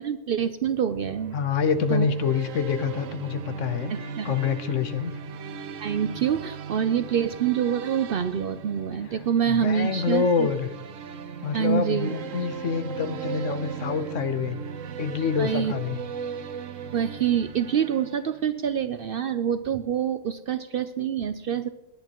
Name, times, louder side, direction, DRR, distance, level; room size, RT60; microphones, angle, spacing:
voice 1, 0.0-1.4 1.9-2.1 4.2-4.3 5.8-10.5 11.5-12.2 15.4-15.7 16.9-21.7, right 8 dB, 60° right, 11 dB, 0.6 m, -26 dB
sound 1, 0.9-18.6, right 6 dB, 80° right, 1.1 m, -38 dB
voice 2, 1.3-3.9 4.2-5.2 9.0-10.7 11.4-14.6 15.0-16.0, left 6 dB, 75° left, 11 dB, 1.2 m, -26 dB
18.5 x 10.5 x 3.0 m, 0.95 s
omnidirectional pair, 1.3 m